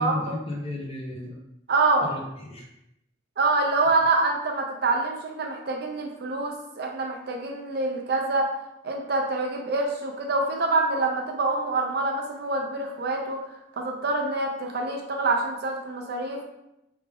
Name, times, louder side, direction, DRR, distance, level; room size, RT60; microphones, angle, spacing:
voice 1, 0.0-1.4 2.0-2.7, left 1 dB, 30° left, -2 dB, 0.7 m, -33 dB
voice 2, 1.7-2.1 3.4-8.5 8.8-16.4, right 3 dB, 55° right, 2 dB, 0.5 m, -26 dB
3.4 x 2.4 x 3.4 m, 0.86 s
head